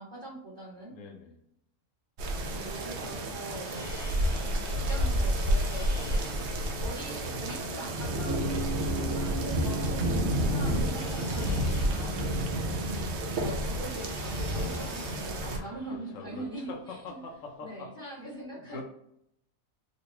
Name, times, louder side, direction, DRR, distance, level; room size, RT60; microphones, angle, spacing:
voice 1, 0.0-0.9 2.5-3.7 4.4-5.9 6.8-8.5 9.0-10.0 10.4-12.3 13.2-17.2 17.6-18.8, right 1 dB, 35° right, -6 dB, 1.1 m, -42 dB
voice 2, 0.9-1.4 6.0-6.3 15.4-17.9 18.5-18.8, left 3 dB, 65° left, 2 dB, 0.9 m, -44 dB
sound 1, 2.2-15.6, right 1 dB, 65° right, 0.7 m, -30 dB
sound 2, 3.4-17.6, left 3 dB, 45° left, 0.6 m, -51 dB
Bass guitar, 8.3-12.4, right 2 dB, 80° right, 1.4 m, -39 dB
3.9 x 2.2 x 2.8 m, 0.76 s
omnidirectional pair, 1.6 m